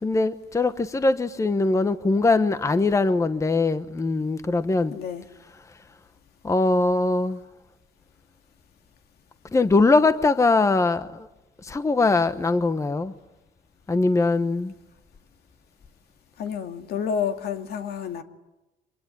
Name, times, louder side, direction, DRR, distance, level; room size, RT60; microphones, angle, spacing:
voice 1, 0.0-4.9 6.4-7.4 9.5-11.3 11.6-13.1 13.9-14.7, left 3 dB, 20° left, 11 dB, 1.1 m, -21 dB
voice 2, 4.9-5.2 16.4-18.2, left 7 dB, 70° left, 6 dB, 2.4 m, -29 dB
25.0 x 21.5 x 10.0 m, 0.99 s
cardioid pair, 110°, 17 cm